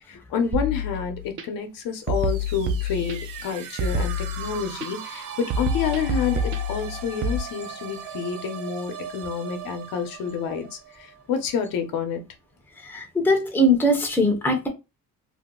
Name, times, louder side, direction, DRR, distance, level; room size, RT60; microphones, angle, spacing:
voice 1, 0.1-10.7 11.3-12.2, left 6 dB, 70° left, 0.8 m, -28 dB
sound 1, 0.5-1.4 2.1-3.4 3.8-4.9 5.5-7.4, left 1 dB, 35° right, 0.5 m, -27 dB
sound 2, 1.9-11.7, right 8 dB, 65° right, 0.8 m, -39 dB
voice 2, 12.7-14.7, left 1 dB, 5° left, 0.6 m, -21 dB
2.7 x 2.2 x 3.7 m
cardioid pair, 140°, 35 cm